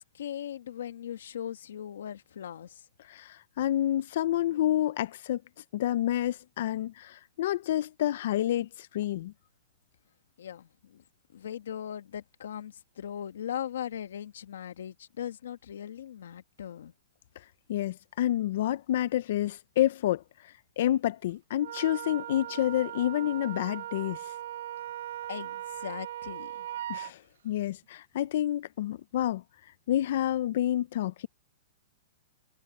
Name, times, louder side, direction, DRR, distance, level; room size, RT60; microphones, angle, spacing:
voice 1, 0.1-2.8 10.4-11.0 11.3-16.9 25.3-26.7, left 10 dB, 75° left, 1.8 m, -39 dB
voice 2, 3.0-5.4 5.7-9.3 17.7-24.3 26.9-29.4 29.9-31.3, left 12 dB, 45° left, 0.4 m, -29 dB
Wind instrument woodwind instrument, 21.6-27.1, right 12 dB, 70° right, 1.0 m, -39 dB
hypercardioid pair, 175°, 0 cm